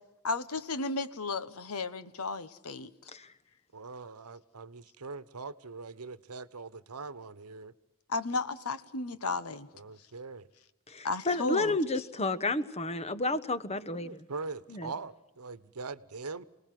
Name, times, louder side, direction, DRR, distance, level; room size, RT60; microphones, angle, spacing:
voice 1, 0.2-2.9 8.1-9.7 11.0-11.8, left 3 dB, 75° left, 1.3 m, -34 dB
voice 2, 3.7-7.7 9.7-10.5 13.9-16.4, right 4 dB, 80° right, 1.1 m, -42 dB
voice 3, 10.9-14.2 14.7-14.9, left 2 dB, 30° left, 1.1 m, -31 dB
28.0 x 19.0 x 7.7 m
head